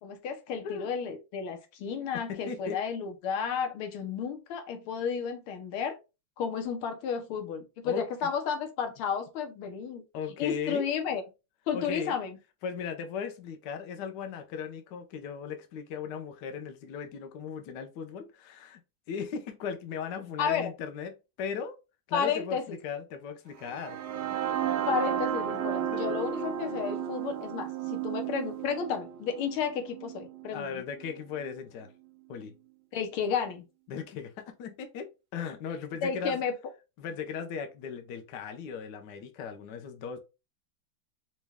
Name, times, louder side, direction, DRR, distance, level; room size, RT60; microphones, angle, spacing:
voice 1, 0.0-5.9 6.4-10.0 10.4-11.2 11.7-12.4 20.4-20.7 22.1-22.8 24.9-30.8 32.9-33.7 36.0-36.5, left 7 dB, 85° left, 1.8 m, -32 dB
voice 2, 2.3-2.8 7.8-8.0 10.1-10.8 11.7-12.2 12.6-18.8 19.1-21.8 22.1-24.0 25.5-26.0 30.5-31.9 32.3-32.6 33.9-36.4 37.0-40.2, left 6 dB, 65° left, 1.2 m, -37 dB
sound 1, 23.6-31.5, right 9 dB, 65° right, 1.0 m, -33 dB
5.2 x 2.3 x 3.4 m
omnidirectional pair, 2.3 m